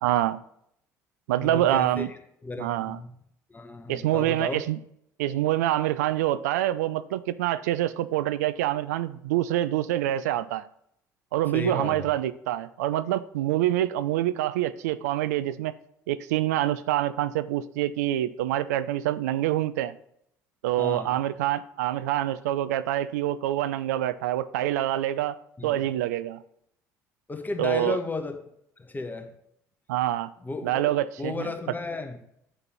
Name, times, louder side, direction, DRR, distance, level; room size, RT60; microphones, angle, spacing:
voice 1, 0.0-0.4 1.3-2.1 2.6-3.0 3.9-4.8 5.2-10.7 11.3-15.7 16.1-19.9 20.6-25.4 25.6-26.4 27.6-28.0 29.9-30.3 30.6-31.5, right 13 dB, 80° right, 16 dB, 0.3 m, -26 dB
voice 2, 1.3-3.1 3.5-4.6 11.5-12.1 20.8-21.2 25.6-25.8 27.3-28.3 28.8-29.3 30.4-30.9 31.2-32.2, left 3 dB, 20° left, 5 dB, 1.3 m, -34 dB
9.0 x 4.1 x 5.4 m, 0.72 s
hypercardioid pair, 60°, 9 cm